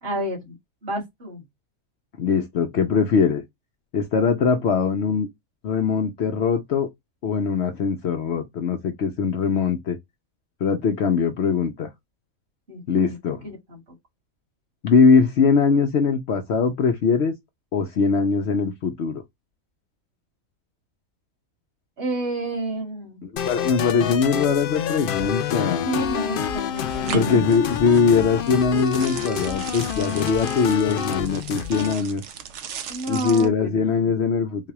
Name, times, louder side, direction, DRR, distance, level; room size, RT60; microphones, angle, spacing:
voice 1, 0.0-0.5 0.8-1.4 12.7-13.0 13.4-13.8 22.0-23.3 25.8-27.7 32.9-34.1, right 1 dB, 45° right, 2.2 m, -30 dB
voice 2, 2.2-3.4 3.9-5.3 5.6-6.9 7.2-10.0 10.6-11.9 12.9-13.5 14.8-17.3 17.7-19.2 23.2-25.8 27.1-32.2 33.1-34.7, left 5 dB, 60° left, 0.8 m, -21 dB
sound 1, 23.4-31.9, left 9 dB, 80° left, 0.4 m, -28 dB
sound 2, 26.8-33.5, right 8 dB, 65° right, 0.9 m, -37 dB
4.0 x 2.3 x 2.9 m
omnidirectional pair, 1.5 m